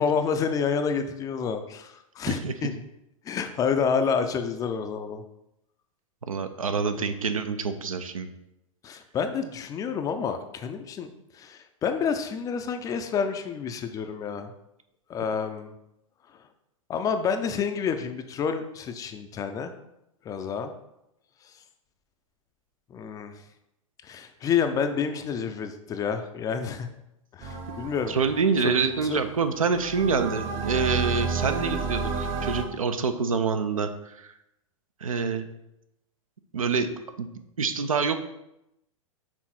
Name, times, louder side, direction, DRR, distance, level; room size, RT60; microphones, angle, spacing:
voice 1, 0.0-2.7 3.3-5.2 6.8-7.0 8.8-14.5 15.1-15.7 16.9-19.7 20.3-20.7 22.9-23.4 24.0-26.9 27.3-28.2 28.6-28.8 29.0-29.2, left 6 dB, 20° left, 8 dB, 0.4 m, -29 dB
voice 2, 6.3-8.3 28.1-34.4 35.0-35.5 36.5-36.9 37.2-37.3 37.6-38.2, right 5 dB, 75° right, 9 dB, 0.6 m, -26 dB
sound 1, 27.4-32.6, right 5 dB, 35° right, 1.0 m, -32 dB
6.1 x 3.7 x 4.3 m, 0.86 s
figure-of-eight pair, 100°, 18 cm